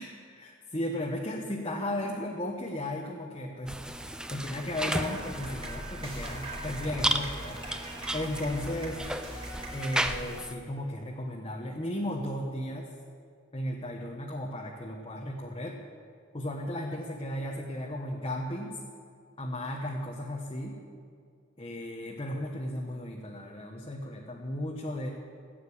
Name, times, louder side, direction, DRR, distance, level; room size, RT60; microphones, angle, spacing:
voice 1, 0.0-3.7 4.3-9.2 9.7-12.9 13.5-15.8 16.3-18.8 19.4-20.8 21.6-25.1, left 1 dB, 30° left, -1 dB, 1.3 m, -35 dB
sound 1, 3.7-10.5, right 1 dB, 5° right, 0.6 m, -34 dB
sound 2, 4.9-10.9, right 1 dB, 30° right, 3.6 m, -41 dB
16.0 x 9.2 x 8.8 m, 2.2 s
head